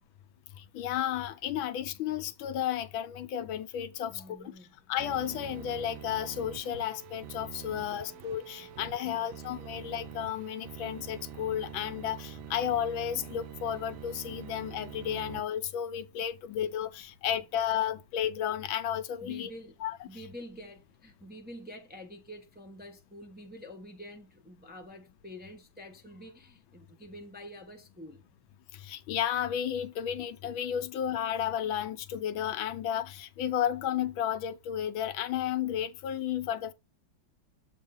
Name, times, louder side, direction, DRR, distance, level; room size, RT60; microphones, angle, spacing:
voice 1, 0.6-4.5 4.9-19.5 19.8-20.0 28.7-36.7, left 10 dB, 80° left, 1.4 m, -33 dB
voice 2, 4.1-4.7 7.7-8.7 9.0-9.4 19.2-19.8 20.1-28.2, equal, 5° right, 0.8 m, -48 dB
sound 1, 5.0-15.4, right 10 dB, 80° right, 1.4 m, -45 dB
7.5 x 3.6 x 5.3 m
omnidirectional pair, 2.2 m